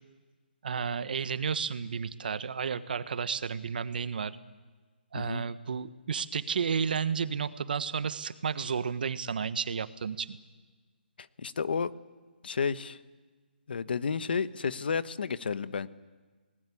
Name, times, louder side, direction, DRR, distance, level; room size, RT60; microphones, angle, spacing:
voice 1, 0.6-4.3 5.1-10.4, right 6 dB, 55° right, 13 dB, 1.3 m, -32 dB
voice 2, 11.2-11.9 12.4-13.0 13.7-15.9, left 5 dB, 60° left, 14 dB, 1.1 m, -31 dB
28.5 x 19.5 x 8.5 m, 1.4 s
hypercardioid pair, 170°, 6 cm